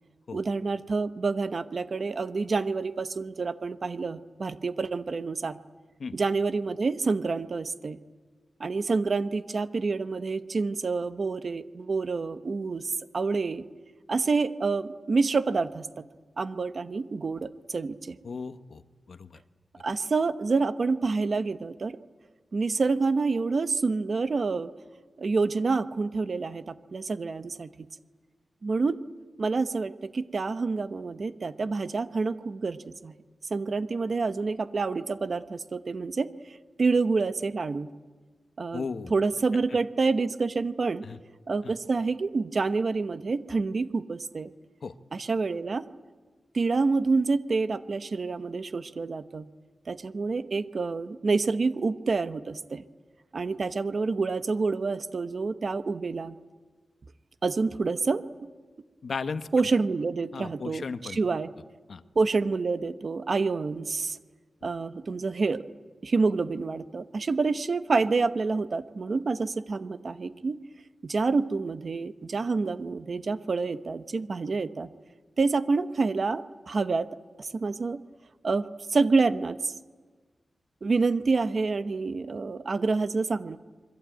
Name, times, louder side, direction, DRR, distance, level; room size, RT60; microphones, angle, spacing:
voice 1, 0.3-5.6 6.1-8.0 8.6-13.6 14.1-16.1 16.4-18.2 19.8-22.0 22.5-24.7 25.2-27.7 28.6-29.0 29.4-33.2 33.5-36.3 36.8-37.9 38.6-41.0 41.5-44.5 45.1-45.9 46.5-49.5 49.9-52.8 53.3-56.4 57.4-58.5 59.5-61.5 62.1-64.2 64.6-65.6 66.0-70.6 71.0-74.9 75.4-77.1 77.4-78.0 78.4-78.6 78.9-79.7 80.8-83.6, right 4 dB, 40° right, 12 dB, 0.9 m, -28 dB
voice 2, 18.2-18.8 19.1-19.4 38.7-39.1 41.0-41.2 41.6-41.7 44.8-44.9 59.0-59.7 60.3-61.2 61.9-62.0, left 5 dB, 55° left, 11 dB, 1.0 m, -35 dB
26.5 x 22.5 x 9.1 m, 1.4 s
wide cardioid pair, 175°, 0 cm